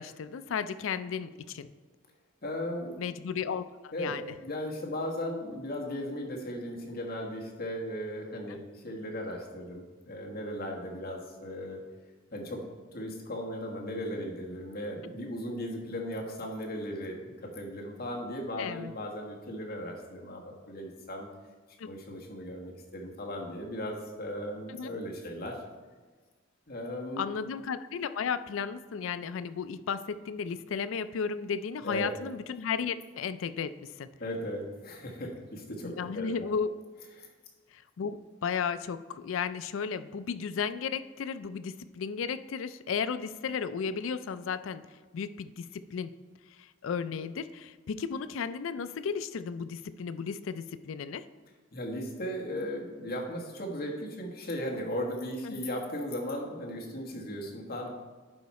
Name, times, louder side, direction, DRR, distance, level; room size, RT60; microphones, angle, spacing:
voice 1, 0.0-1.7 3.0-4.3 8.5-8.6 18.6-18.9 21.8-21.9 24.7-24.9 27.2-34.1 35.8-36.7 37.7-44.8 45.1-46.1 46.8-51.3 55.4-55.6, left 6 dB, 75° left, 13 dB, 0.4 m, -34 dB
voice 2, 2.4-3.0 3.9-4.1 4.4-11.8 12.3-12.6 12.9-21.3 21.8-25.6 26.7-27.3 31.8-32.1 34.2-36.5 37.2-37.3 51.7-57.9, equal, 50° left, -1 dB, 1.4 m, -37 dB
11.0 x 4.7 x 4.2 m, 1.4 s
head